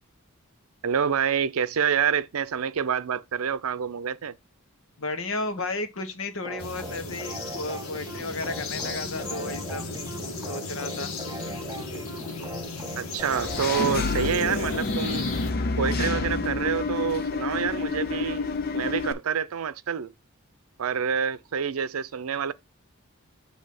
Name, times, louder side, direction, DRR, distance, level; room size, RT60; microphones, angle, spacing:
voice 1, 0.8-4.4 13.0-15.2 15.8-20.1 20.8-22.5, right 7 dB, 90° right, 0.5 m, -27 dB
voice 2, 5.0-9.8 10.4-11.1, left 2 dB, 65° left, 1.2 m, -33 dB
sound 1, 6.4-14.4, right 2 dB, 15° right, 0.6 m, -41 dB
sound 2, 6.6-15.5, left 3 dB, 85° left, 1.4 m, -36 dB
Engine / Mechanisms, 13.2-19.1, left 3 dB, 45° left, 0.6 m, -28 dB
7.5 x 2.9 x 5.8 m
head